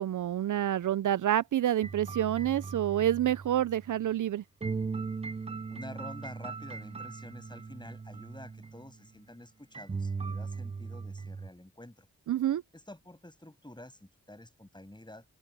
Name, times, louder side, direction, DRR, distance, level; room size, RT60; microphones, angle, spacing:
voice 1, 0.0-4.4 12.3-12.6, right 11 dB, 70° right, 0.5 m, -28 dB
sound 1, 1.8-4.0 4.6-8.9 9.7-11.5, right 4 dB, 20° right, 0.4 m, -38 dB
voice 2, 5.7-12.1 12.7-15.2, left 1 dB, 15° left, 6.6 m, -49 dB
open air
cardioid pair, 50°, 32 cm